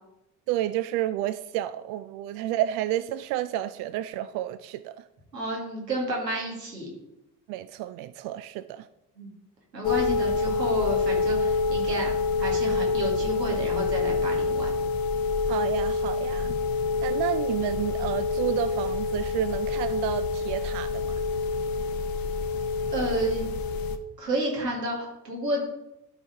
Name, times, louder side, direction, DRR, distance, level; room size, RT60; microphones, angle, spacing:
voice 1, 0.5-5.0 7.5-8.9 15.5-16.6 17.0-21.2, right 13 dB, 50° right, 0.5 m, -30 dB
voice 2, 5.3-6.9 9.2-9.3 9.7-12.1 12.4-14.7 22.9-23.5 24.2-25.7, right 1 dB, 85° right, 2.0 m, -30 dB
sound 1, 9.8-24.0, left 4 dB, 45° left, 0.8 m, -27 dB
12.0 x 4.9 x 3.9 m
figure-of-eight pair, 50°, 48 cm